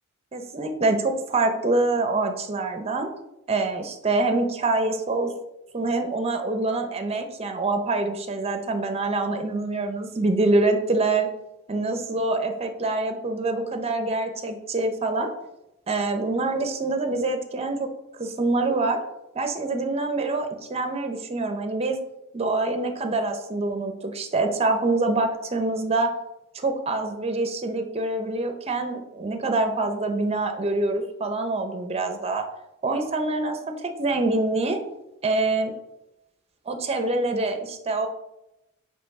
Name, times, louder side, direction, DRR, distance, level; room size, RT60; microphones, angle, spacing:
voice 1, 0.3-3.1 3.5-5.3 5.7-11.3 11.7-15.3 15.9-17.9 18.2-19.0 19.3-22.0 22.3-26.1 26.5-32.5 32.8-34.8 35.2-35.7 36.7-38.1, right 2 dB, 30° right, 6 dB, 0.7 m, -25 dB
6.7 x 3.2 x 5.4 m, 0.91 s
head